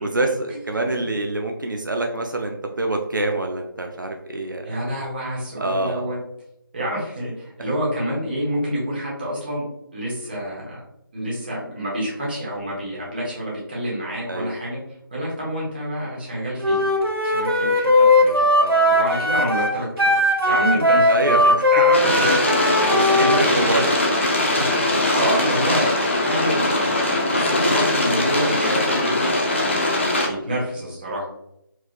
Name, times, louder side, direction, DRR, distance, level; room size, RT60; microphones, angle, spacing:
voice 1, 0.0-4.8 5.6-6.0 7.6-7.7 14.3-14.6 18.6-18.9 21.1-21.7 22.5-24.0 27.3-27.5 30.0-30.2, right 2 dB, 55° right, 3 dB, 0.6 m, -26 dB
voice 2, 4.6-6.2 6.7-9.6 9.9-10.8 11.1-14.8 15.1-16.9 17.2-18.4 18.9-20.2 20.4-21.1 21.4-22.3 23.2-23.4 23.7-23.9 24.5-24.8 25.1-29.1 30.2-31.3, equal, 25° right, -5 dB, 1.3 m, -27 dB
Wind instrument woodwind instrument, 16.6-23.4, left 1 dB, 80° right, 1.1 m, -18 dB
sound 1, 21.9-30.3, left 1 dB, 30° left, 0.6 m, -21 dB
4.6 x 3.4 x 2.4 m, 0.81 s
figure-of-eight pair, 160°, 12 cm